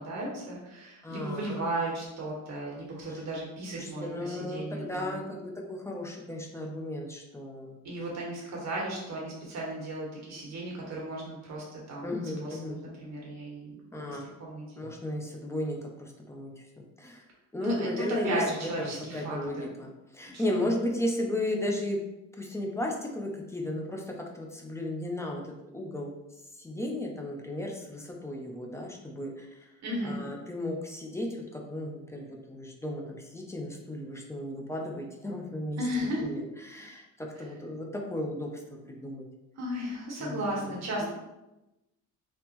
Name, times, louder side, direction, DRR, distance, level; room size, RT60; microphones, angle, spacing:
voice 1, 0.0-5.2 7.8-12.1 12.4-14.8 17.6-19.4 20.3-20.4 29.8-30.2 35.8-36.3 37.4-37.5 39.6-41.1, right 1 dB, 50° right, -3 dB, 1.3 m, -35 dB
voice 2, 1.0-1.6 3.8-7.8 12.0-12.8 13.9-14.3 14.8-17.2 17.5-18.4 18.8-22.0 22.4-26.1 26.6-29.7 30.0-35.8 36.2-39.3 40.2-41.1, left 1 dB, 10° left, 0 dB, 0.4 m, -35 dB
3.5 x 2.9 x 2.9 m, 0.96 s
cardioid pair, 135°, 34 cm